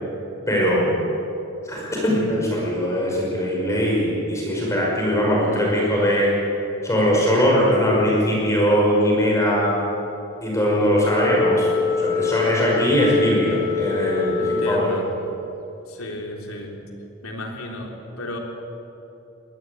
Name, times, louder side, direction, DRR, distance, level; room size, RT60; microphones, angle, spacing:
voice 1, 0.5-0.9 1.6-6.3 6.8-9.7 10.4-11.7 12.0-14.9, equal, 15° left, -4 dB, 5.5 m, -20 dB
Wind instrument woodwind instrument, 11.0-15.4, left 4 dB, 60° left, 3.2 m, -25 dB
voice 2, 14.4-15.1 15.9-16.8 17.2-18.4, left 1 dB, 80° left, 1 dB, 3.7 m, -33 dB
22.0 x 18.5 x 8.1 m, 3.0 s
head